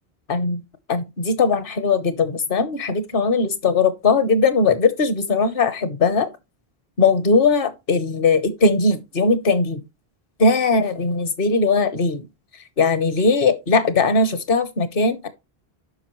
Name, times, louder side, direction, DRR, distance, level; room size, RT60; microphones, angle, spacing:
voice 1, 0.3-0.6 0.9-6.3 7.0-9.8 10.4-12.3 12.8-15.3, left 4 dB, 60° left, 1.2 m, -19 dB
9.3 x 6.0 x 3.1 m
omnidirectional pair, 1.0 m